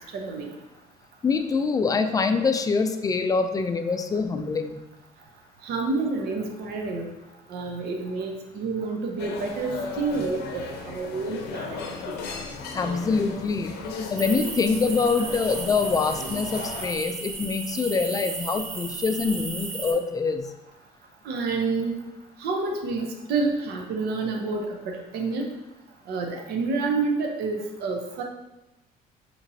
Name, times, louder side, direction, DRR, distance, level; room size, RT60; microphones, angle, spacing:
voice 1, 0.1-0.5 5.6-7.1 7.5-12.1 21.2-22.0 22.4-25.5 26.1-28.2, right 3 dB, 75° right, 2 dB, 0.7 m, -29 dB
voice 2, 1.2-4.8 12.7-13.7 14.1-20.5, left 4 dB, 20° left, 7 dB, 0.3 m, -25 dB
sound 1, 9.2-16.9, left 4 dB, 80° left, 0.7 m, -36 dB
sound 2, 14.2-19.9, right 4 dB, 40° right, 0.6 m, -35 dB
5.0 x 3.0 x 2.7 m, 0.97 s
cardioid pair, 110°, 17 cm